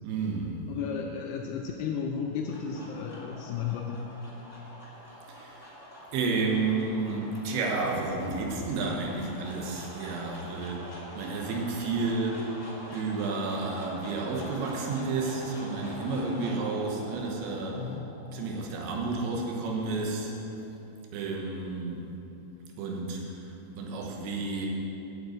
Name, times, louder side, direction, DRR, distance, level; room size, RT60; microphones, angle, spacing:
voice 1, 0.0-0.6 5.3-5.7 6.1-12.5 12.9-17.9 18.3-20.3 21.1-22.1 22.8-23.5 23.8-24.7, right 3 dB, 75° right, 0 dB, 3.4 m, -31 dB
voice 2, 0.7-4.1 17.8-18.1, left 6 dB, 90° left, 2 dB, 2.3 m, -34 dB
sound 1, 2.2-20.5, equal, 40° left, 1.0 m, -45 dB
9.0 x 7.9 x 8.0 m, 2.9 s
omnidirectional pair, 5.3 m